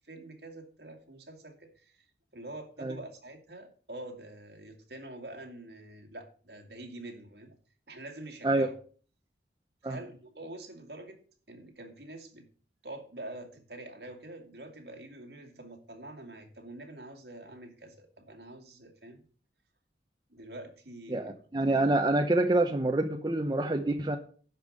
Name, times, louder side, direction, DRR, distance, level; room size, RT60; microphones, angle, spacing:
voice 1, 0.0-2.0 2.3-7.6 7.9-8.7 9.8-11.2 11.5-12.5 12.8-19.2 20.3-21.4, right 1 dB, 65° right, 4 dB, 2.3 m, -46 dB
voice 2, 21.1-24.2, right 2 dB, 25° right, 5 dB, 0.6 m, -27 dB
11.5 x 5.3 x 6.4 m, 0.43 s
head